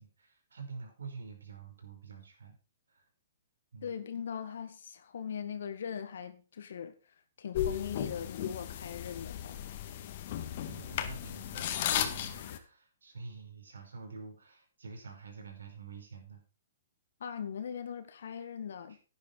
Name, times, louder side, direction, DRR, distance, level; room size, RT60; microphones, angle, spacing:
voice 1, 0.0-2.6 2.9-3.0 3.7-3.9 10.6-16.4, right 4 dB, 90° right, 5.4 m, -47 dB
voice 2, 3.8-9.6 17.2-19.0, left 7 dB, 70° left, 1.9 m, -40 dB
sound 1, 7.5-12.6, left 10 dB, 50° left, 1.9 m, -35 dB
11.0 x 10.0 x 4.7 m
hypercardioid pair, 145°, 0 cm